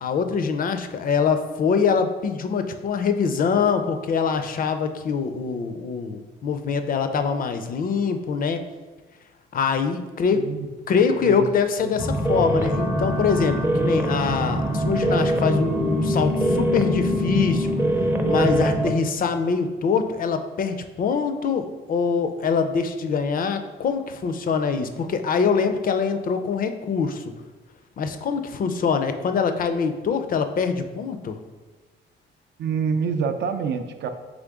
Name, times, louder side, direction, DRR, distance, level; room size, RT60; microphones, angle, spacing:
voice 1, 0.0-8.6 9.5-10.4 10.9-17.7 18.3-27.2 28.0-31.4, left 5 dB, 45° left, 8 dB, 0.4 m, -24 dB
sound 1, 12.0-18.9, equal, 10° right, 0.5 m, -23 dB
voice 2, 32.6-34.1, right 6 dB, 60° right, 7 dB, 0.4 m, -26 dB
3.8 x 3.3 x 3.5 m, 1.2 s
cardioid pair, 90°, 20 cm